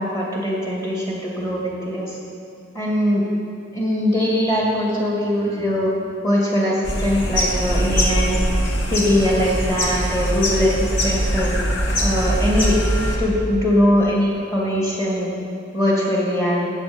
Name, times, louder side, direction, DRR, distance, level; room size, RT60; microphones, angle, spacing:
voice 1, 0.0-2.2 2.7-3.2 3.7-5.9 6.2-8.4 8.9-11.5 12.0-12.8 13.2-15.3 15.7-16.7, equal, 15° left, -5 dB, 2.4 m, -21 dB
sound 1, 6.8-13.2, equal, 70° left, 1.8 m, -22 dB
15.5 x 8.0 x 5.5 m, 2.4 s
head